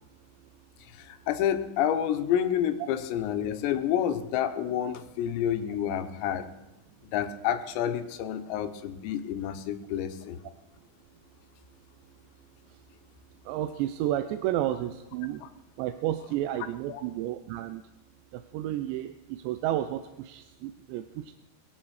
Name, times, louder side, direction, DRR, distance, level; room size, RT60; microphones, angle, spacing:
voice 1, 0.9-6.4 7.1-10.4 16.9-17.0, left 10 dB, 85° left, 9 dB, 3.2 m, -29 dB
voice 2, 13.5-15.4 15.8-17.8 18.3-21.4, right 13 dB, 90° right, 9 dB, 2.9 m, -31 dB
21.5 x 9.7 x 4.8 m, 0.99 s
omnidirectional pair, 5.0 m